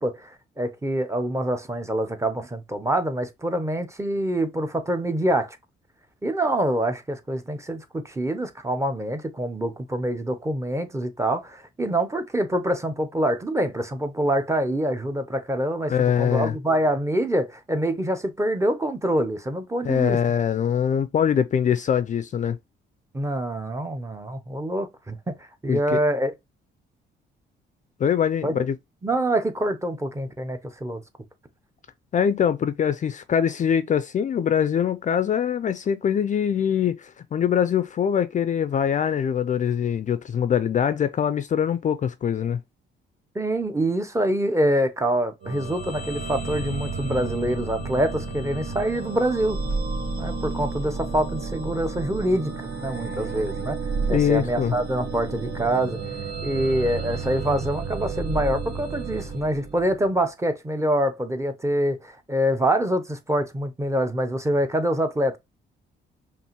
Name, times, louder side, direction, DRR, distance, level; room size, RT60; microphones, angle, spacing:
voice 1, 0.0-5.6 6.2-15.9 16.2-20.2 23.1-25.3 25.6-26.3 28.4-28.6 29.0-31.0 43.3-49.6 50.2-53.8 54.1-56.0 56.4-65.4, right 1 dB, 15° right, 0.7 m, -25 dB
voice 2, 15.9-16.6 19.8-22.6 25.7-26.0 28.0-28.8 32.1-42.6 54.1-54.7, left 8 dB, 40° left, 0.4 m, -23 dB
sound 1, 45.4-60.1, right 3 dB, 80° right, 1.7 m, -31 dB
5.4 x 2.5 x 2.9 m
cardioid pair, 90°, 20 cm